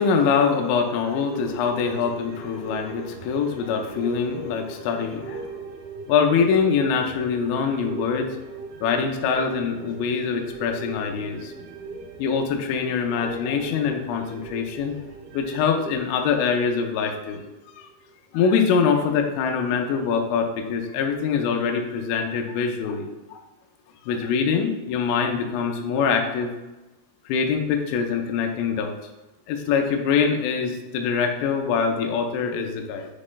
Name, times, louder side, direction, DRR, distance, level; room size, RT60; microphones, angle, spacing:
voice 1, 0.0-5.6 6.1-8.3 8.8-11.5 12.2-15.0 15.3-17.4 17.8-17.9 18.3-23.4 24.1-26.5 27.3-28.9 29.5-33.1, left 6 dB, 85° left, 3 dB, 2.9 m, -24 dB
sound 1, 1.2-18.0 18.4-18.5, right 4 dB, 85° right, 3.2 m, -40 dB
7.1 x 3.1 x 2.2 m, 1.1 s
omnidirectional pair, 5.6 m